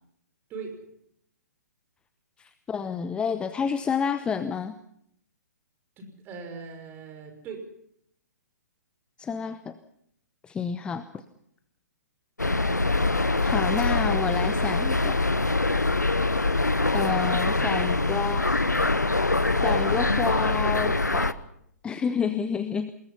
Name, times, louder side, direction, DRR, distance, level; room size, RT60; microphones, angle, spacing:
voice 1, 0.5-0.9 6.0-7.7, right 4 dB, 20° right, 6 dB, 5.7 m, -40 dB
voice 2, 2.4-4.8 9.2-9.8 10.4-11.2 13.4-15.2 16.9-18.8 19.6-21.4 21.8-22.9, left 6 dB, 10° left, 12 dB, 0.9 m, -29 dB
sound 1, 12.4-21.3, left 2 dB, 90° left, 1.1 m, -24 dB
26.0 x 21.5 x 5.6 m, 0.71 s
figure-of-eight pair, 125°, 9 cm